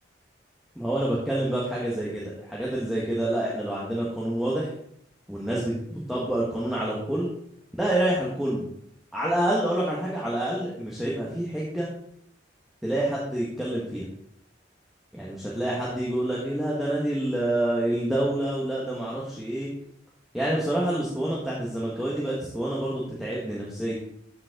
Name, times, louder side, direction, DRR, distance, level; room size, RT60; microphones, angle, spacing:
voice 1, 0.7-4.7 5.3-7.3 7.7-8.6 9.1-11.9 12.8-14.0 15.1-19.7 20.3-23.9, right 1 dB, ahead, -6 dB, 1.6 m, -27 dB
13.0 x 5.4 x 3.8 m, 0.70 s
head